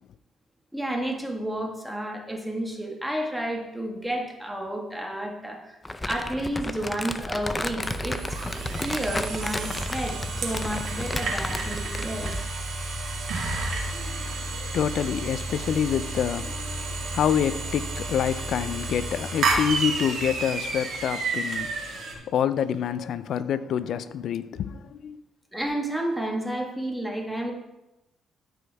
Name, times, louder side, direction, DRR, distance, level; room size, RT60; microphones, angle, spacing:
voice 1, 0.7-5.8 6.0-12.3 25.5-27.5, right 1 dB, 5° right, 1.5 m, -31 dB
Crumpling crinkling, 5.8-12.5, left 2 dB, 15° left, 0.5 m, -33 dB
sound 1, 7.8-22.1, right 3 dB, 70° right, 2.1 m, -31 dB
voice 2, 13.9-25.2, left 8 dB, 65° left, 0.4 m, -27 dB
13.5 x 5.2 x 3.5 m
cardioid pair, 95°, 0 cm